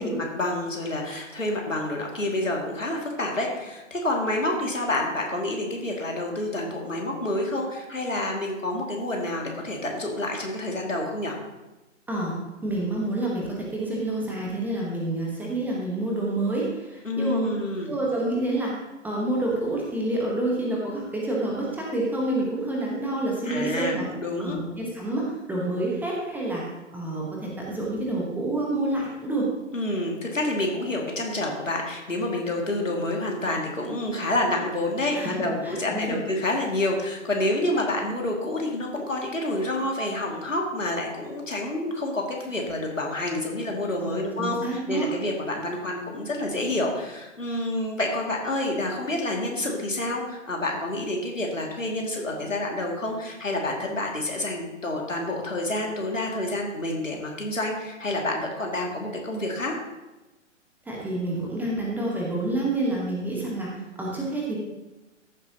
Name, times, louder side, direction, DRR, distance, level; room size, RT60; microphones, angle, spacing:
voice 1, 0.0-11.4 17.0-17.9 23.5-24.6 29.7-59.8, left 1 dB, 80° left, 0 dB, 2.4 m, -28 dB
voice 2, 12.6-17.5 17.9-18.7 19.0-24.1 24.4-26.6 26.9-29.5 35.1-36.2 44.0-45.1 60.8-64.6, right 1 dB, 5° right, -3 dB, 1.2 m, -28 dB
14.0 x 7.5 x 2.9 m, 1.1 s
figure-of-eight pair, 125°, 38 cm